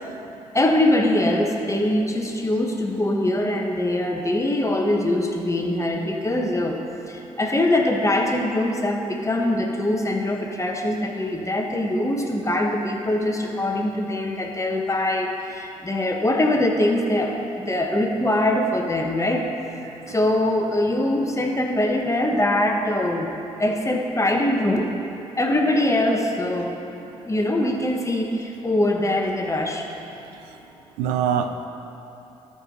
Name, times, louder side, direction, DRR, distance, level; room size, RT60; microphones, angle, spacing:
voice 1, 0.5-6.8 7.1-19.5 20.1-23.3 23.6-24.9 25.4-26.7 27.3-29.9, left 1 dB, 20° left, 1 dB, 1.4 m, -23 dB
voice 2, 19.8-20.1 31.0-31.6, right 8 dB, 85° right, 7 dB, 0.5 m, -25 dB
13.5 x 5.7 x 4.0 m, 2.9 s
hypercardioid pair, 45°, 15 cm